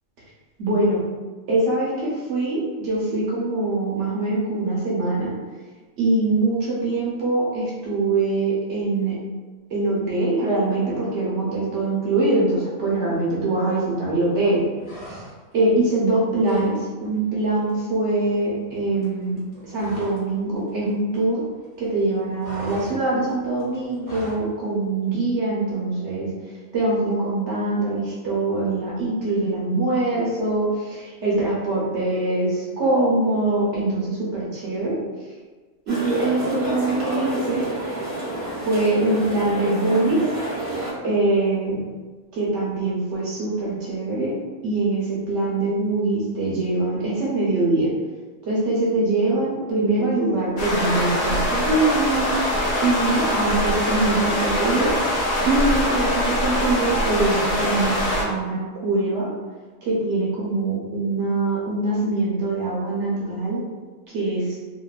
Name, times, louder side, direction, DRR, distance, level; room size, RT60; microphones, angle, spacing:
voice 1, 0.6-1.0 1.5-5.3 6.0-9.2 9.7-14.6 15.1-15.2 15.5-21.4 21.8-26.3 26.7-35.0 35.9-37.6 38.6-40.2 41.0-41.8 42.3-44.3 44.6-47.9 48.5-54.9 55.5-59.3 59.8-63.6 64.1-64.5, right 2 dB, 60° right, -5 dB, 1.0 m, -23 dB
sound 1, 14.8-15.6 15.9-16.8 17.0-17.2 17.5-20.3 20.6-21.7 21.9-24.5, equal, 30° left, 0.9 m, -40 dB
sound 2, 35.9-40.9, right 1 dB, 30° right, 0.7 m, -29 dB
sound 3, 50.6-58.2, left 1 dB, 90° left, 1.2 m, -23 dB
2.8 x 2.2 x 2.3 m, 1.3 s
omnidirectional pair, 1.5 m